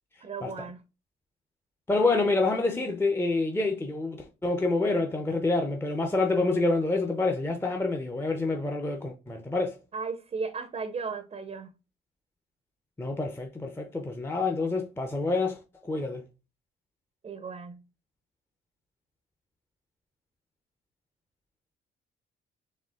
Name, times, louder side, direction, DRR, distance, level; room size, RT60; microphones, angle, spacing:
voice 1, 0.2-0.8 9.9-11.7 17.2-17.8, right 5 dB, 30° right, 0.6 m, -35 dB
voice 2, 1.9-9.8 13.0-16.2, left 3 dB, 10° left, 0.6 m, -27 dB
4.3 x 2.8 x 3.6 m
cardioid pair, 90°, 20 cm